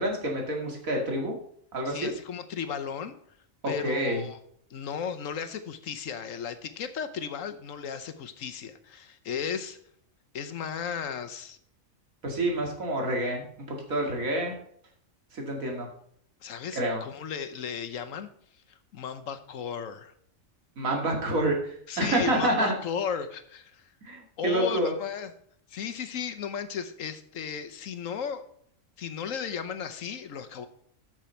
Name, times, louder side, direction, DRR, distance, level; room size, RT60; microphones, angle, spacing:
voice 1, 0.0-1.4 1.7-2.1 3.8-4.3 12.2-14.6 15.3-15.9 16.7-17.0 20.8-22.7 24.0-24.9, right 1 dB, 90° right, 0 dB, 2.6 m, -28 dB
voice 2, 1.8-3.2 3.7-4.4 4.7-9.8 10.3-11.6 16.4-18.3 18.7-20.1 21.9-23.9 24.4-25.3 25.7-28.4 29.0-30.7, left 7 dB, 75° left, 10 dB, 1.3 m, -35 dB
13.5 x 6.2 x 4.4 m, 0.64 s
omnidirectional pair, 1.4 m